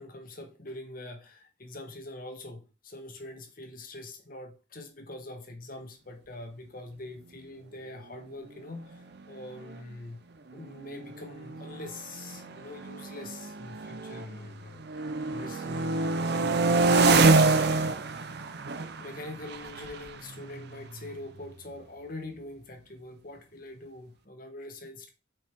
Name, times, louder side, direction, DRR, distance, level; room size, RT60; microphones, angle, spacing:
voice 1, 0.0-10.2 10.5-18.2 18.9-25.1, left 2 dB, 45° left, 1.4 m, -44 dB
sound 1, 9.1-9.2 9.4-9.8 10.5-14.5 14.8-21.5, right 3 dB, 55° right, 0.6 m, -27 dB
5.5 x 5.3 x 4.5 m
head